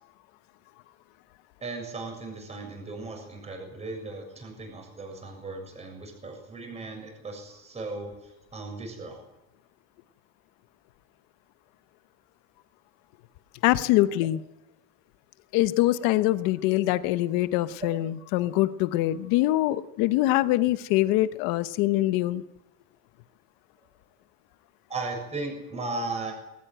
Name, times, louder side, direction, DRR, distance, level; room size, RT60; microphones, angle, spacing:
voice 1, 1.6-8.1 8.5-9.2 17.8-17.9 24.9-26.3, right 3 dB, 15° right, 3 dB, 7.0 m, -36 dB
voice 2, 13.6-14.4 15.5-22.4, left 16 dB, 70° left, 13 dB, 1.2 m, -24 dB
21.0 x 18.5 x 9.1 m, 0.91 s
cardioid pair, 175°, 37 cm